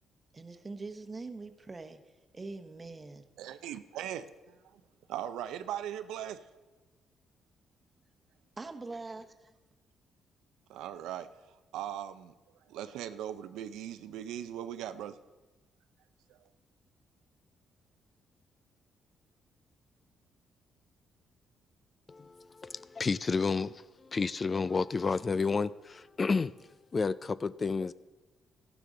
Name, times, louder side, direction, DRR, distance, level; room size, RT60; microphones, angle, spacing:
voice 1, 0.3-2.0 2.3-3.3 8.6-9.5, right 3 dB, 25° right, 1.0 m, -43 dB
voice 2, 3.4-4.3 5.1-6.4 10.7-11.3 11.7-12.3 12.7-15.2 16.3-16.5, right 10 dB, 90° right, 0.5 m, -39 dB
voice 3, 22.1-26.5 26.9-27.9, left 4 dB, 35° left, 0.3 m, -31 dB
14.5 x 11.5 x 3.9 m
cardioid pair, 90°, 0 cm